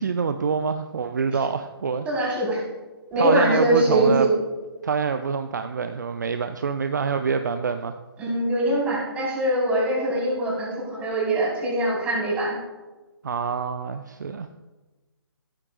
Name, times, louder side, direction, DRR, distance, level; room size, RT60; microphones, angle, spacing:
voice 1, 0.0-2.4 3.2-4.3 4.8-7.9 13.2-14.5, right 5 dB, 45° right, 8 dB, 0.6 m, -26 dB
voice 2, 2.0-2.6 3.1-4.3 8.2-12.6, right 1 dB, 10° right, -5 dB, 4.4 m, -23 dB
15.5 x 12.5 x 2.5 m, 1.2 s
figure-of-eight pair, 140°, 13 cm